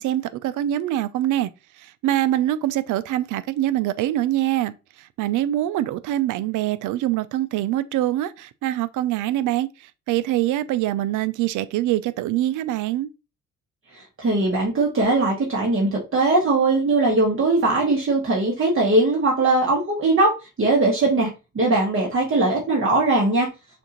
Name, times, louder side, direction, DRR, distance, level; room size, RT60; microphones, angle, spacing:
voice 1, 0.0-1.5 1.8-13.1, right 14 dB, 80° right, 0.5 m, -24 dB
voice 2, 13.9-20.3 20.6-23.5, right 2 dB, 45° right, 1.5 m, -20 dB
6.4 x 2.6 x 2.9 m
cardioid pair, 90°, 30 cm